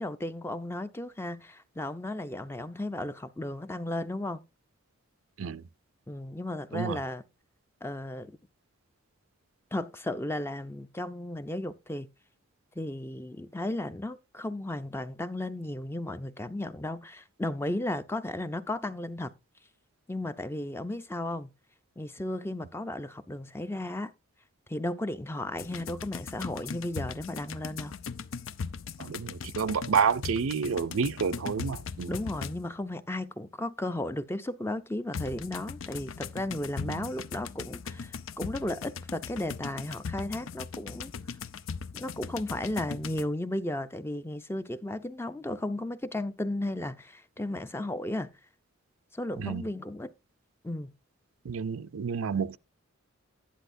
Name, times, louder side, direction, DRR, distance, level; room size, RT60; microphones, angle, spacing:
voice 1, 0.0-4.4 6.1-7.2 7.8-8.4 9.7-12.1 12.8-19.3 20.1-21.5 22.0-24.1 24.7-28.0 32.1-41.1 41.9-48.3 49.1-50.1 50.6-50.9, left 1 dB, 10° left, 0.5 m, -34 dB
sound 1, 25.6-32.8 35.1-43.2, left 5 dB, 70° left, 0.5 m, -39 dB
voice 2, 29.0-32.1 36.9-37.1 49.4-49.6 51.4-52.6, right 6 dB, 80° right, 0.5 m, -29 dB
12.0 x 10.0 x 2.6 m
head